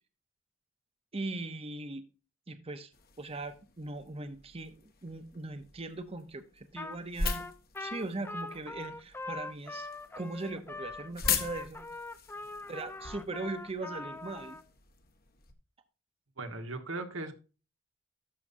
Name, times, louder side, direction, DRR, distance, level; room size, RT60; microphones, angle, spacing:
voice 1, 1.1-2.1 2.5-2.9 3.2-7.5 7.8-9.9 10.2-11.9 12.7-14.6, right 2 dB, 30° right, 9 dB, 0.8 m, -39 dB
Slpash Water on ground, 2.9-15.5, left 6 dB, 50° left, 1.3 m, -41 dB
Trumpet, 6.8-7.0 7.2-14.6, left 2 dB, 10° left, 0.7 m, -42 dB
voice 2, 12.4-12.7 16.4-17.3, right 2 dB, 85° right, 6 dB, 1.5 m, -39 dB
12.0 x 7.0 x 2.6 m, 0.33 s
head